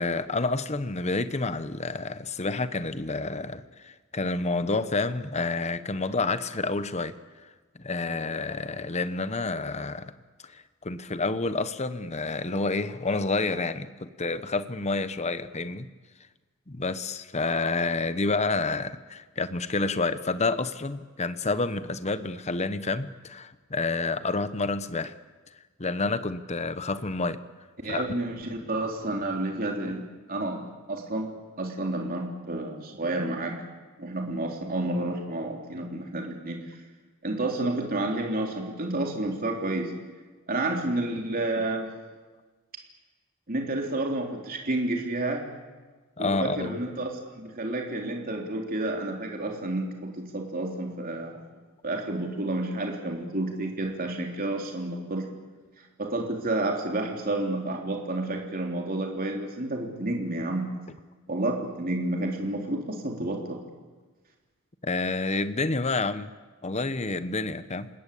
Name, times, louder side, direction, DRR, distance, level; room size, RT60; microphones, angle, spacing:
voice 1, 0.0-7.1 7.8-10.1 10.4-15.9 16.7-25.1 25.8-27.4 27.9-28.1 46.2-46.8 64.8-66.3 66.6-67.9, left 3 dB, 30° left, 12 dB, 1.0 m, -29 dB
voice 2, 27.8-30.0 30.3-31.3 31.6-33.6 34.0-36.8 37.2-39.9 40.5-41.9 43.5-45.5 46.2-47.1 47.4-51.4 51.8-55.3 56.0-60.7 61.3-63.6, right 2 dB, 40° right, 1 dB, 3.5 m, -30 dB
28.5 x 19.5 x 8.5 m, 1.3 s
head